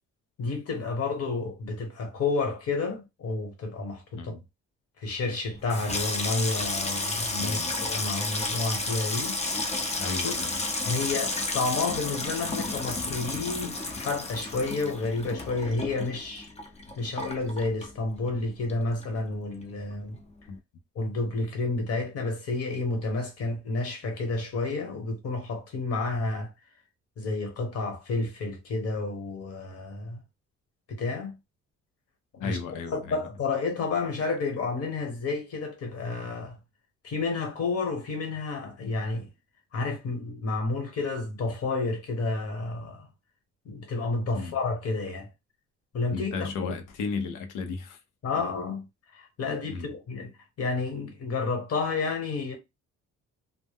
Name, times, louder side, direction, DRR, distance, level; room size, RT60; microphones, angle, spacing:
voice 1, 0.4-4.4 5.0-9.3 10.2-10.3 10.8-16.5 17.0-20.2 20.9-26.5 27.2-30.2 30.9-31.3 32.4-32.6 32.9-36.6 37.0-39.3 39.7-43.1 43.6-45.3 45.9-46.3 46.6-46.7 48.2-48.8 49.1-50.3 50.6-52.6, left 3 dB, 55° left, 1.2 m, -30 dB
Water tap faucet / Sink (filling or washing), 5.5-18.4 18.7-19.3 19.6-19.9, left 2 dB, 20° left, 0.6 m, -32 dB
voice 2, 7.4-7.7 10.0-10.6 20.5-20.6 32.4-33.2 44.3-44.6 46.1-48.0 49.7-49.9, left 4 dB, 85° left, 0.6 m, -34 dB
2.1 x 2.0 x 3.4 m
cardioid pair, 90°, 30 cm